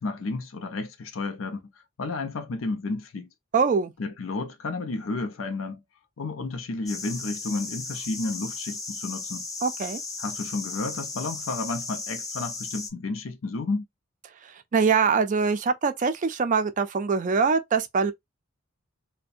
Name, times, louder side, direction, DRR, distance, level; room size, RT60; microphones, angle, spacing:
voice 1, 0.0-1.6 2.0-3.3 4.0-5.8 6.2-9.5 10.2-13.8, left 3 dB, 90° left, 0.5 m, -31 dB
voice 2, 3.5-3.9 9.6-10.0 14.7-18.1, right 5 dB, 40° right, 0.4 m, -23 dB
sound 1, 6.9-12.9, left 3 dB, 20° left, 0.5 m, -36 dB
2.6 x 2.1 x 2.4 m
head